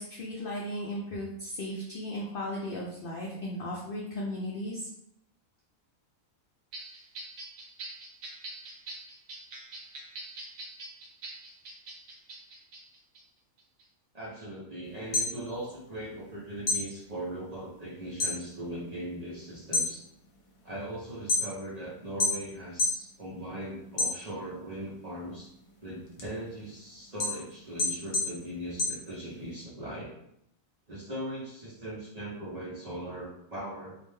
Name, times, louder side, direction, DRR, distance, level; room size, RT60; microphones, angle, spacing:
voice 1, 0.0-4.9, left 1 dB, 85° left, -4 dB, 0.4 m, -36 dB
sound 1, 6.7-13.2 13.6-13.8, right 2 dB, 70° right, 1.0 m, -44 dB
voice 2, 14.1-20.0 20.6-25.5 25.8-30.1 30.9-34.0, right 1 dB, 45° right, -7 dB, 0.5 m, -39 dB
sound 2, 14.9-16.3 16.6-18.4 18.8-19.2 19.6-21.8 22.2-23.1 23.4-24.6 25.1-29.6, left 3 dB, 70° left, 0.9 m, -30 dB
2.5 x 2.1 x 3.1 m, 0.76 s
omnidirectional pair, 1.5 m